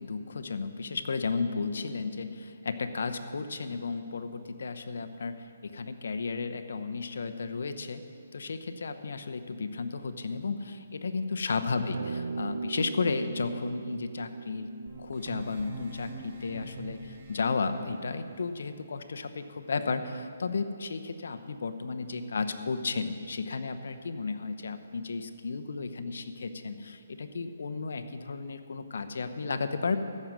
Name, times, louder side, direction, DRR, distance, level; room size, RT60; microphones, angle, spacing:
voice 1, 0.0-8.0 8.3-30.0, left 4 dB, 70° left, 9 dB, 0.8 m, -33 dB
sound 1, 11.9-16.6, right 4 dB, 70° right, 0.4 m, -39 dB
sound 2, 14.9-17.6, right 3 dB, 45° right, 1.8 m, -44 dB
14.5 x 6.3 x 7.5 m, 2.4 s
hypercardioid pair, 160°, 0 cm